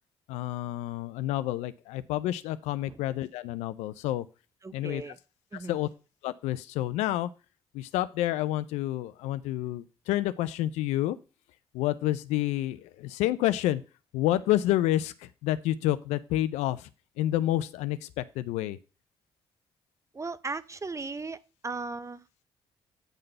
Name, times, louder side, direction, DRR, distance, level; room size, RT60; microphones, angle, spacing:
voice 1, 0.3-4.3 4.7-5.0 5.7-5.9 6.2-7.3 7.7-11.2 11.7-13.8 14.1-16.9 17.2-18.8, left 14 dB, 85° left, 0.5 m, -29 dB
voice 2, 4.6-5.2 5.5-5.8 20.1-22.3, right 3 dB, 25° right, 0.7 m, -37 dB
9.2 x 3.9 x 6.6 m
hypercardioid pair, 50°, 11 cm